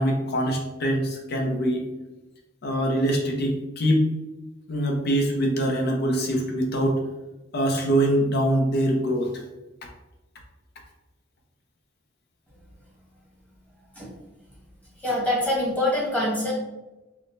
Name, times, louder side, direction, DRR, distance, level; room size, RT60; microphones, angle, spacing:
voice 1, 0.0-1.8 2.6-4.1 4.7-7.0 7.5-9.3, right 1 dB, 60° left, 2 dB, 0.7 m, -23 dB
voice 2, 15.0-16.5, left 1 dB, 10° left, -6 dB, 1.3 m, -24 dB
4.8 x 2.1 x 2.6 m, 1.1 s
head